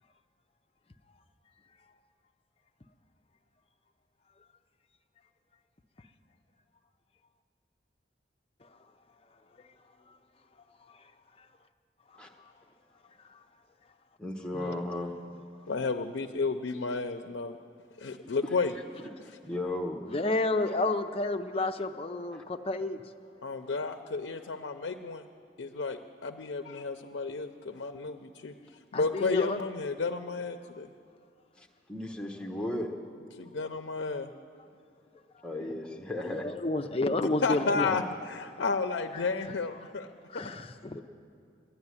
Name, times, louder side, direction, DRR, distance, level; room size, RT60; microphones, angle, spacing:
voice 1, 14.2-15.1 19.0-20.2 20.7-20.8 22.3-22.4 31.6-32.9 35.4-36.6 40.4-40.5 40.9-41.0, left 1 dB, 5° left, 0 dB, 1.0 m, -36 dB
voice 2, 15.7-17.6 18.0-18.7 23.4-25.2 25.6-28.5 28.9-30.9 33.4-34.3 37.4-40.1 40.4-40.6, left 4 dB, 85° left, 6 dB, 0.5 m, -32 dB
voice 3, 20.1-23.0 28.9-29.6 36.2-38.0 40.3-41.0, left 2 dB, 30° left, 7 dB, 0.5 m, -30 dB
11.5 x 11.0 x 9.7 m, 2.4 s
head